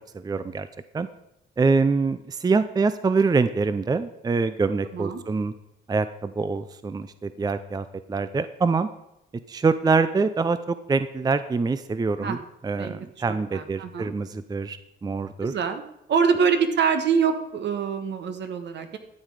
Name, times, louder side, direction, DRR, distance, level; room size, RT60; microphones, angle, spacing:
voice 1, 0.1-0.7 0.9-1.1 1.6-5.5 5.9-8.9 9.5-15.5, right 4 dB, 20° right, 12 dB, 0.5 m, -25 dB
voice 2, 13.3-14.1 15.4-15.8 16.1-19.0, right 6 dB, 65° right, 7 dB, 1.3 m, -25 dB
12.5 x 7.6 x 4.8 m, 0.85 s
cardioid pair, 90°, 20 cm